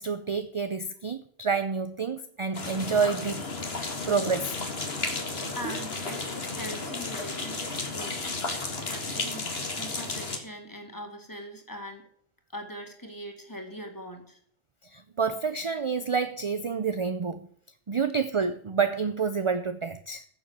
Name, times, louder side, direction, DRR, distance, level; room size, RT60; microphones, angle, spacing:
voice 1, 0.0-3.5 3.8-4.5 14.9-17.5 17.9-20.2, right 5 dB, 35° right, 0.6 m, -28 dB
sound 1, 2.5-10.4, left 3 dB, 75° left, 2.1 m, -33 dB
voice 2, 5.5-6.2 6.5-12.1 12.5-14.4, equal, 20° left, 2.3 m, -41 dB
15.0 x 7.1 x 6.6 m
omnidirectional pair, 1.1 m